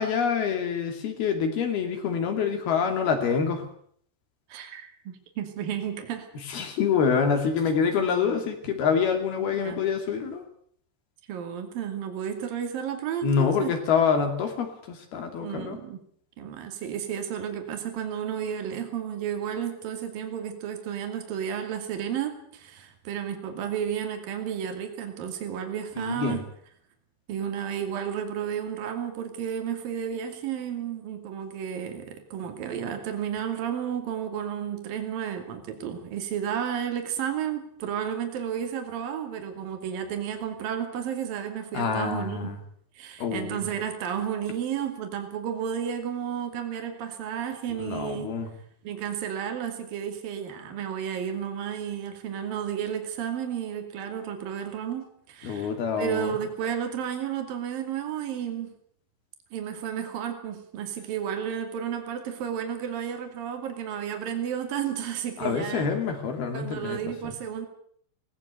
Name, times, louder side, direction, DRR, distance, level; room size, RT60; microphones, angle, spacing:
voice 1, 0.0-3.6 6.5-10.4 13.2-15.8 26.0-26.4 41.7-42.6 43.2-43.6 47.7-48.5 55.4-56.3 65.4-67.3, left 6 dB, 70° left, 5 dB, 4.5 m, -26 dB
voice 2, 4.5-6.3 8.0-8.4 9.4-9.8 11.3-13.7 15.4-16.0 16.4-26.5 27.3-42.5 43.0-48.3 48.8-58.8 59.5-65.9 66.5-67.7, right 8 dB, 60° right, 5 dB, 4.1 m, -32 dB
19.0 x 18.0 x 8.3 m, 0.62 s
omnidirectional pair, 4.7 m